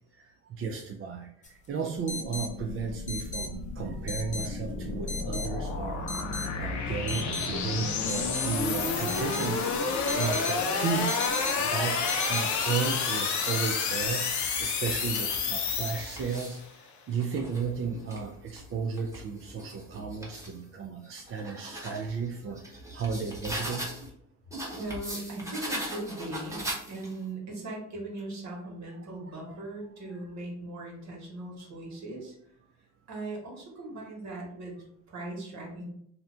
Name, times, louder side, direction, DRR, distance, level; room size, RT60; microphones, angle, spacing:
voice 1, 0.1-6.1 6.6-9.6 9.9-11.2 11.6-14.3 14.6-16.6 17.1-23.9 29.2-29.6, right 5 dB, 45° right, 2 dB, 0.4 m, -34 dB
sound 1, 1.4-1.5 2.1-2.5 3.1-3.5 4.1-4.5 5.1-5.5 6.1-6.5 7.1-7.5 8.1-8.5 9.1-9.5 10.1-10.6 11.1-11.6 12.1-12.4, left 2 dB, 25° left, 0.6 m, -35 dB
sound 2, 2.0-16.6, left 5 dB, 70° left, 0.6 m, -30 dB
sound 3, 12.2-13.0 13.7-16.7 17.1-20.6 21.0-24.1 24.5-27.3, right 1 dB, 10° right, 1.1 m, -41 dB
voice 2, 24.7-32.3 33.1-35.9, right 2 dB, 65° right, -1 dB, 1.3 m, -39 dB
2.8 x 2.2 x 3.7 m, 0.71 s
cardioid pair, 90°, 30 cm